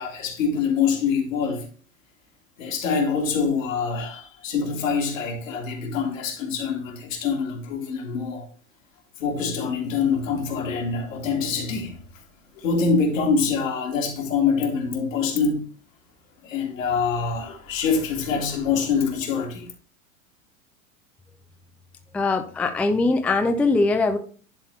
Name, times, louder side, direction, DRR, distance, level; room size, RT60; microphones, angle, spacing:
voice 1, 0.0-1.6 2.6-8.5 9.2-12.0 12.6-15.6 16.4-19.7, left 5 dB, 70° left, 2.2 m, -25 dB
voice 2, 22.1-24.2, left 3 dB, 5° left, 0.4 m, -21 dB
10.5 x 4.2 x 3.2 m
hypercardioid pair, 90°, 41 cm